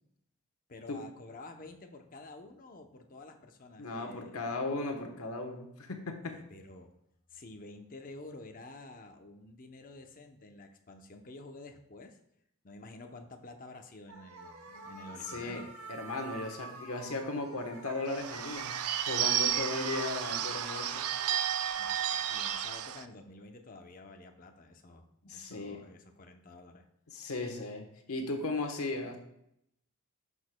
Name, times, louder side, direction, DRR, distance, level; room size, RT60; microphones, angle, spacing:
voice 1, 0.7-4.4 6.2-6.9 7.3-12.2 12.6-15.7 21.8-26.8, left 2 dB, 40° left, 4 dB, 0.7 m, -50 dB
voice 2, 3.8-6.4 15.2-15.6 15.9-18.8 19.1-21.0 25.3-25.8 27.1-29.2, left 2 dB, 80° left, 5 dB, 1.2 m, -36 dB
sound 1, 14.1-21.4, right 3 dB, 70° right, 1.1 m, -46 dB
Bird / Bell, 18.1-23.0, right 10 dB, 85° right, 0.5 m, -32 dB
11.0 x 6.3 x 2.2 m, 0.77 s
head